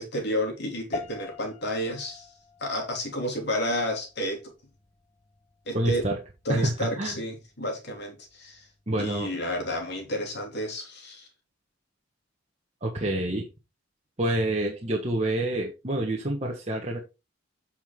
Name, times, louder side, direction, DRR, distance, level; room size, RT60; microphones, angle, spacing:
voice 1, 0.0-2.3 2.6-4.5 5.6-6.1 6.4-8.7 9.0-11.3, equal, 55° left, 3.1 m, -31 dB
sound 1, 0.9-10.5, left 3 dB, 35° left, 1.1 m, -46 dB
voice 2, 5.7-6.2 6.5-7.1 8.9-9.3 12.8-13.5 14.2-17.0, right 1 dB, 35° right, 1.5 m, -27 dB
8.3 x 6.1 x 3.7 m
head